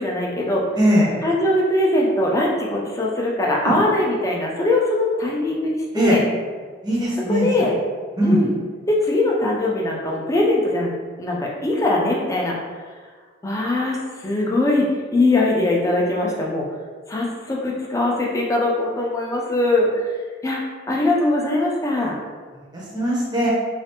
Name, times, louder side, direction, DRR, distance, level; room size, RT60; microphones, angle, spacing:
voice 1, 0.0-0.7 1.2-6.2 7.3-7.7 8.2-8.5 8.9-10.9 11.2-12.6 13.4-16.6 17.1-20.1 20.4-20.6 20.9-22.1, left 2 dB, 15° left, -2 dB, 0.4 m, -21 dB
voice 2, 0.8-1.2 3.6-3.7 5.9-6.2 6.8-7.5 8.2-8.4 22.6-23.5, equal, 20° right, -6 dB, 0.7 m, -20 dB
3.2 x 2.4 x 2.8 m, 1.5 s
head